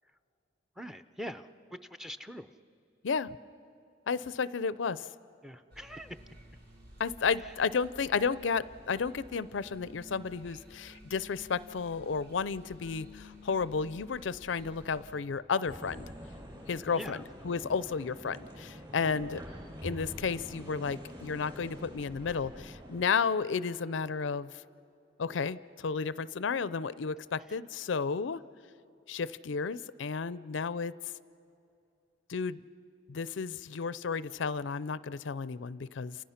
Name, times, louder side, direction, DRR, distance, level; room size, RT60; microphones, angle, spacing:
voice 1, 0.8-2.5 5.4-6.2 7.4-7.5 16.9-17.2 27.5-27.6, equal, 5° right, 9 dB, 0.6 m, -43 dB
voice 2, 3.0-3.4 4.1-5.0 7.0-16.1 16.7-17.2 17.4-19.4 19.8-24.5 25.2-28.4 29.1-30.9 32.3-32.6 33.1-36.2, left 5 dB, 70° left, 17 dB, 0.5 m, -32 dB
sound 1, 5.7-15.2, left 1 dB, 50° right, 3.6 m, -53 dB
sound 2, 15.6-23.1, equal, 25° right, 5.4 m, -46 dB
29.0 x 28.5 x 5.8 m, 2.7 s
head